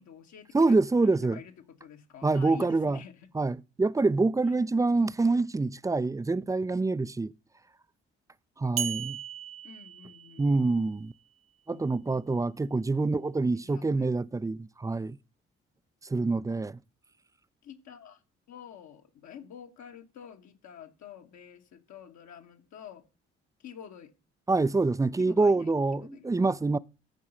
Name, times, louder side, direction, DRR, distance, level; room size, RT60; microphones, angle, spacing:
voice 1, 0.0-3.1 8.6-8.9 9.6-11.0 11.7-12.9 13.5-14.1 17.6-18.2 18.5-23.0 23.6-24.1 25.2-26.3, left 8 dB, 60° left, 1.4 m, -49 dB
voice 2, 0.5-1.4 2.2-3.0 3.3-7.3 8.6-9.2 10.4-11.1 11.7-15.2 16.0-16.8 24.5-26.8, right 3 dB, 10° right, 0.4 m, -26 dB
sound 1, 8.8-10.8, right 8 dB, 45° right, 0.8 m, -36 dB
14.0 x 4.8 x 5.4 m
figure-of-eight pair, 40°, 32 cm